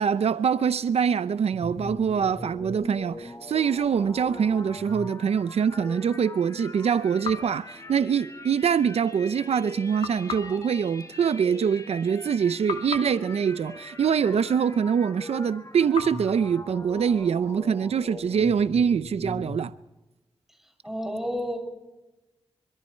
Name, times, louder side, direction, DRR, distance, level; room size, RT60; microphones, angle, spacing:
voice 1, 0.0-19.7, right 7 dB, 80° right, 0.6 m, -24 dB
sound 1, 1.5-19.7, left 2 dB, 30° left, 4.4 m, -41 dB
sound 2, 7.2-8.6 10.0-12.3 12.7-15.0 15.9-17.8, left 6 dB, 80° left, 2.3 m, -40 dB
voice 2, 20.6-21.6, equal, 5° right, 6.7 m, -31 dB
25.5 x 24.5 x 4.5 m
wide cardioid pair, 80°, 11 cm